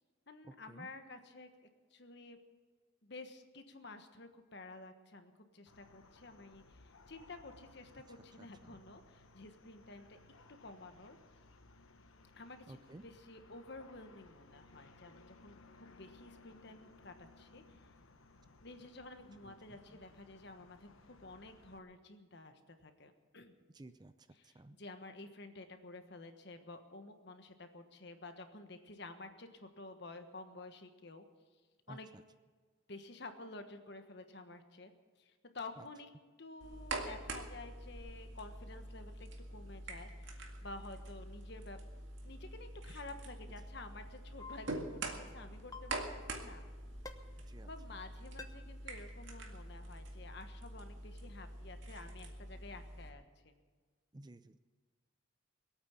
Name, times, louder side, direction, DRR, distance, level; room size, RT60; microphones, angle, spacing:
voice 1, 0.3-1.5 1.9-2.4 3.0-10.2 10.5-11.2 12.3-15.5 15.8-17.8 18.6-23.5 24.3-31.2 31.9-32.1 32.9-34.9 35.2-36.1 36.4-41.8 42.2-46.6 47.6-53.5, left 2 dB, 55° left, 7 dB, 1.3 m, -51 dB
sound 1, 5.7-21.8, left 3 dB, 80° left, 1.1 m, -61 dB
voice 2, 12.7-13.0 19.4-19.5 23.7-24.1 24.4-24.8 31.9-32.0 35.8-35.9 47.5-47.7 54.1-54.6, right 1 dB, 20° right, 11 dB, 0.4 m, -53 dB
sound 2, 36.6-53.1, right 2 dB, 65° right, 2.1 m, -45 dB
sound 3, 44.4-44.6 45.7-45.9 47.0-47.1 48.4-48.5, left 4 dB, 15° left, 0.8 m, -46 dB
21.5 x 8.9 x 7.2 m, 1.5 s
head